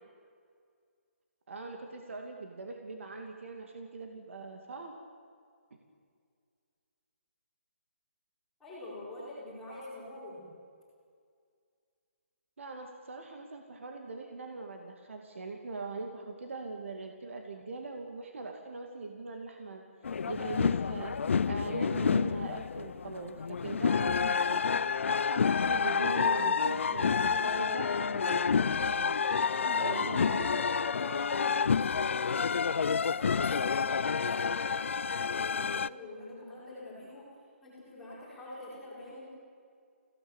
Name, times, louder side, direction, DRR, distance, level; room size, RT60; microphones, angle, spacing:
voice 1, 1.5-5.0 12.6-19.8 20.3-21.2 21.5-24.8 25.3-29.1 29.8-30.7, right 3 dB, 65° right, 3 dB, 2.4 m, -41 dB
voice 2, 8.6-10.5 29.6-37.3 37.6-39.3, left 1 dB, 5° left, -9 dB, 4.7 m, -45 dB
sound 1, 20.0-35.9, left 6 dB, 65° left, 0.5 m, -29 dB
24.0 x 17.0 x 7.2 m, 2.2 s
hypercardioid pair, 170°, 7 cm